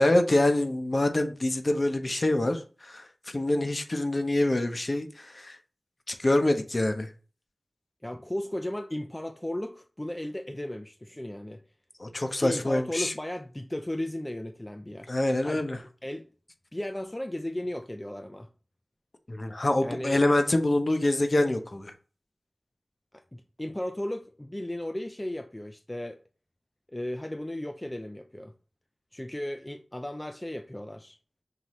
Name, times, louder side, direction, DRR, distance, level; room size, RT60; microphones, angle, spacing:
voice 1, 0.0-5.6 6.1-7.1 12.0-13.1 15.1-15.8 19.3-21.9, left 1 dB, 45° left, 0.7 m, -25 dB
voice 2, 8.0-11.6 12.4-15.1 15.4-15.6 16.0-16.3 16.7-18.5 19.8-20.2 23.1-26.2 26.9-28.5 29.1-31.2, left 1 dB, 20° left, 0.4 m, -35 dB
5.7 x 2.7 x 3.1 m
cardioid pair, 45°, 0 cm